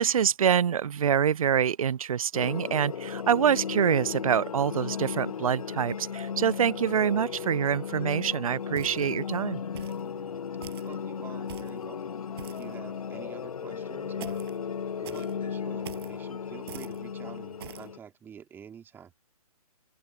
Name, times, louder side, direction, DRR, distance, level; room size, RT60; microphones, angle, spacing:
voice 1, 0.0-9.6, right 8 dB, 65° right, 0.5 m, -25 dB
sound 1, 2.3-18.0, left 7 dB, 65° left, 0.7 m, -35 dB
sound 2, 8.8-9.2 9.8-10.1 10.6-10.9 11.5-11.8 12.4-12.7 14.2-14.6 15.0-15.3 15.8-16.1 16.7-17.0 17.6-17.9, right 12 dB, 40° right, 5.3 m, -44 dB
voice 2, 9.9-12.1 12.4-14.4 15.0-19.1, right 8 dB, 10° right, 2.3 m, -48 dB
open air
figure-of-eight pair, 130°, 20 cm